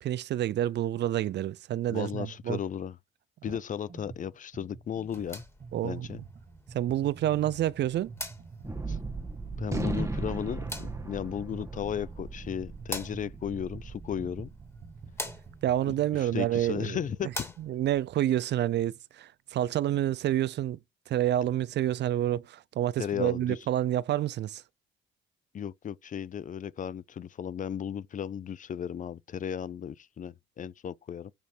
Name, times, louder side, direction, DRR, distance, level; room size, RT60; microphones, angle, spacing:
voice 1, 0.0-2.6 5.7-6.1 6.7-8.1 15.6-17.0 17.6-20.8 21.1-24.6, right 12 dB, 60° right, 0.4 m, -28 dB
voice 2, 1.9-3.0 3.4-5.4 5.8-6.2 8.9-9.0 9.6-14.5 16.1-17.5 23.0-23.6 25.5-31.3, left 8 dB, 40° left, 0.4 m, -35 dB
sound 1, 3.5-3.6 3.9-17.2, right 4 dB, 45° right, 1.3 m, -48 dB
sound 2, 5.0-18.0, left 1 dB, 15° left, 2.0 m, -46 dB
Gunshot gunfire, 8.6-15.2, right 3 dB, 15° right, 1.3 m, -37 dB
6.8 x 3.1 x 4.4 m
cardioid pair, 90°, 20 cm